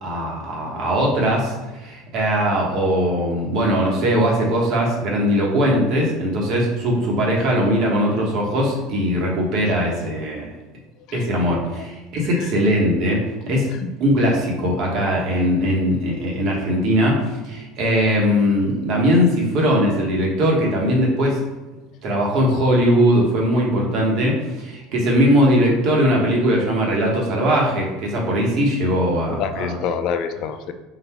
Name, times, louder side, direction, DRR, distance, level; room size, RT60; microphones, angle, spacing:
voice 1, 0.0-10.5 11.1-13.2 13.5-13.7 14.0-21.4 22.0-29.8, equal, 55° right, -2 dB, 1.3 m, -20 dB
voice 2, 29.3-30.7, left 7 dB, 55° left, 8 dB, 0.3 m, -27 dB
4.0 x 2.5 x 4.4 m, 1.1 s
supercardioid pair, 120°, 0 cm